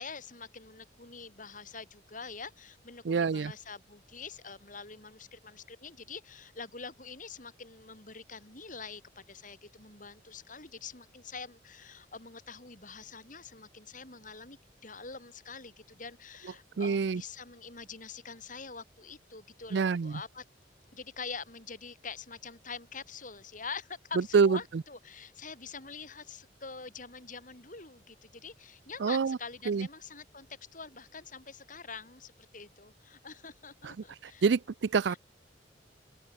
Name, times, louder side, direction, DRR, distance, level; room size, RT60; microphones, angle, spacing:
voice 1, 0.0-20.4 20.9-34.5 35.1-35.2, left 5 dB, 45° left, 7.5 m, -45 dB
voice 2, 3.1-3.5 16.8-17.2 19.7-20.2 24.3-24.6 29.0-29.4 29.7-29.9 33.8-33.9 34.4-35.2, right 5 dB, 75° right, 0.4 m, -26 dB
open air
head